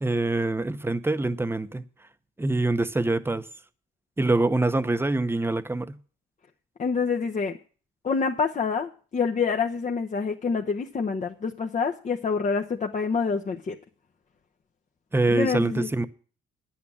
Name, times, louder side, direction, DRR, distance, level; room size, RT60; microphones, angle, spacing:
voice 1, 0.0-1.8 2.4-3.4 4.2-6.0 15.1-16.0, right 2 dB, 10° right, 0.9 m, -25 dB
voice 2, 6.8-7.6 8.0-13.8 15.3-15.9, left 5 dB, 40° left, 0.9 m, -27 dB
10.0 x 8.5 x 7.0 m
cardioid pair, 90°, 20 cm